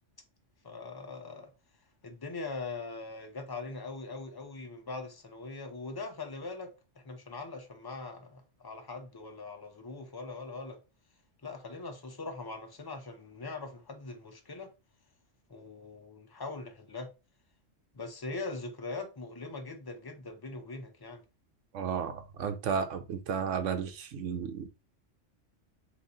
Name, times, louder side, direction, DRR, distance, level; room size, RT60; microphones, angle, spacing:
voice 1, 0.6-1.5 2.0-6.7 7.0-10.8 11.4-14.7 15.5-17.1 17.9-21.2, left 3 dB, 30° left, 0.4 m, -41 dB
voice 2, 21.7-24.7, right 7 dB, 75° right, 1.0 m, -33 dB
3.9 x 2.6 x 3.8 m
omnidirectional pair, 1.3 m